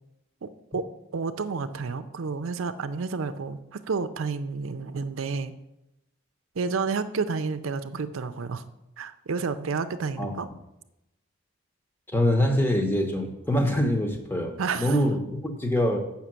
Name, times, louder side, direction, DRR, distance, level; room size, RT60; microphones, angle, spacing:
voice 1, 0.4-0.8 1.1-5.5 6.5-8.6 9.0-10.5 14.6-15.0, right 4 dB, 75° right, 10 dB, 0.5 m, -30 dB
voice 2, 12.1-16.0, left 1 dB, 10° left, 4 dB, 0.9 m, -24 dB
6.9 x 5.8 x 7.5 m, 0.92 s
head